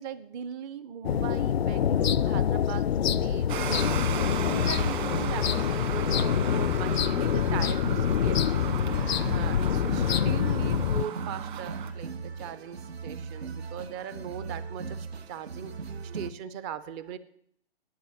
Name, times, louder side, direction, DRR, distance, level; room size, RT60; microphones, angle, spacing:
voice 1, 0.0-3.8 4.4-8.7 9.3-17.2, right 9 dB, 15° right, 14 dB, 0.5 m, -39 dB
sound 1, 1.0-11.0, left 9 dB, 70° left, 0.5 m, -26 dB
sound 2, 3.5-11.9, right 9 dB, 50° right, 1.9 m, -36 dB
sound 3, 4.1-16.3, right 5 dB, 75° right, 1.0 m, -39 dB
10.5 x 8.8 x 9.4 m, 0.70 s
figure-of-eight pair, 125°, 32 cm